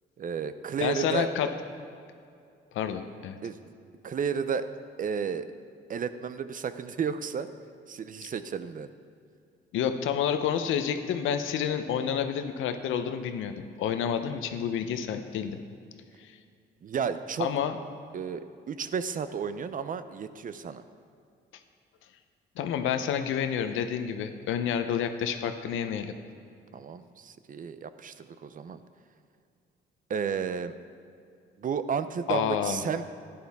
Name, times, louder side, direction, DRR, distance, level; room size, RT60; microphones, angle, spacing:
voice 1, 0.2-1.3 3.4-3.6 4.0-4.7 5.0-5.5 5.9-7.5 7.9-8.9 16.8-17.5 18.1-20.8 26.7-28.8 30.1-30.7 31.6-33.0, right 6 dB, 45° right, 12 dB, 0.5 m, -32 dB
voice 2, 0.8-1.5 2.7-3.4 9.7-15.6 16.2-16.4 17.4-17.8 22.6-26.1 32.3-32.8, left 8 dB, 85° left, 8 dB, 0.7 m, -29 dB
11.5 x 10.5 x 3.5 m, 2.5 s
cardioid pair, 90°, 20 cm